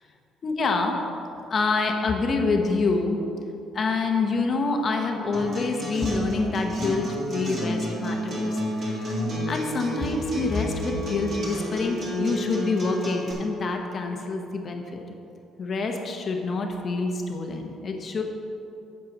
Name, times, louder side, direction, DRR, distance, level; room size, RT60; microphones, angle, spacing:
voice 1, 0.4-1.0 1.5-3.2 3.7-9.2 9.5-15.0 15.6-18.2, left 3 dB, 35° left, 3 dB, 1.0 m, -27 dB
Acoustic guitar, 5.3-13.3, equal, 40° right, 2.4 m, -30 dB
8.6 x 7.5 x 5.3 m, 2.9 s
cardioid pair, 160°, 0 cm